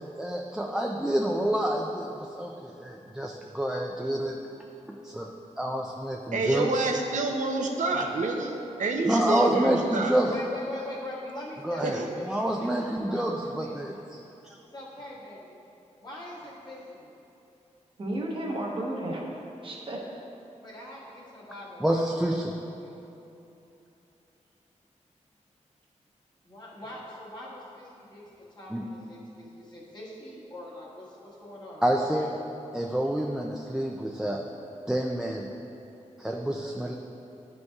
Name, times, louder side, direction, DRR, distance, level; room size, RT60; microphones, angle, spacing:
voice 1, 0.0-4.4 5.0-5.3 5.6-6.7 9.1-10.3 11.6-12.0 12.3-14.2 21.8-22.5 28.7-28.8 31.8-32.3 32.7-34.4 34.9-35.4 36.2-36.9, right 1 dB, 5° right, 0 dB, 0.3 m, -28 dB
voice 2, 6.3-10.2 11.8-12.1, right 2 dB, 80° right, 2 dB, 0.6 m, -28 dB
voice 3, 10.2-12.1 12.6-14.0 14.7-15.6 16.0-17.1 20.6-22.1 22.5-22.9 26.4-28.2 28.5-32.3, left 1 dB, 35° left, -7 dB, 1.5 m, -42 dB
voice 4, 18.0-20.0, right 1 dB, 45° right, -2 dB, 0.9 m, -33 dB
11.0 x 5.2 x 2.3 m, 2.9 s
wide cardioid pair, 145°, 13 cm